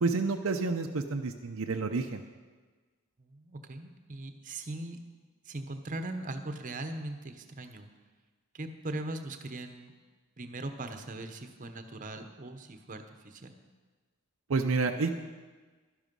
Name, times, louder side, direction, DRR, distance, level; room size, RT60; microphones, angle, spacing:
voice 1, 0.0-2.2 14.5-15.1, right 4 dB, 65° right, 4 dB, 0.6 m, -29 dB
voice 2, 3.2-5.0 5.4-7.9 8.5-9.9 10.4-13.5, right 2 dB, 35° right, 7 dB, 0.9 m, -40 dB
12.0 x 11.0 x 5.4 m, 1.4 s
head